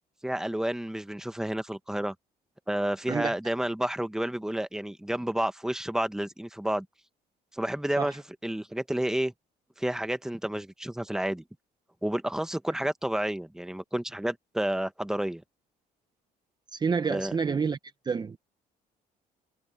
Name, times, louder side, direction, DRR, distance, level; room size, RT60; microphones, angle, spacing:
voice 1, 0.2-2.1 2.7-6.9 7.5-9.3 9.8-11.4 12.0-15.4 17.1-17.3, right 1 dB, 5° right, 1.1 m, -30 dB
voice 2, 16.7-17.8 18.0-18.4, right 5 dB, 25° right, 0.7 m, -28 dB
cardioid pair, 110°, 17 cm